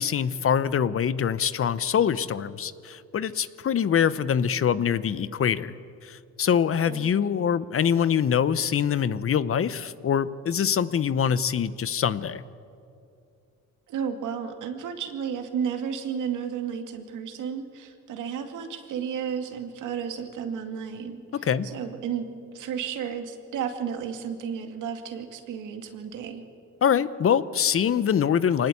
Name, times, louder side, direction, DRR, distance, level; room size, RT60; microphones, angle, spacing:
voice 1, 0.0-5.8 6.0-12.4 21.4-21.7 26.8-28.7, left 8 dB, 45° left, 16 dB, 0.9 m, -24 dB
voice 2, 13.9-22.3 22.5-26.4, right 7 dB, 80° right, 6 dB, 2.3 m, -33 dB
24.0 x 19.5 x 8.6 m, 2.5 s
cardioid pair, 90°, 30 cm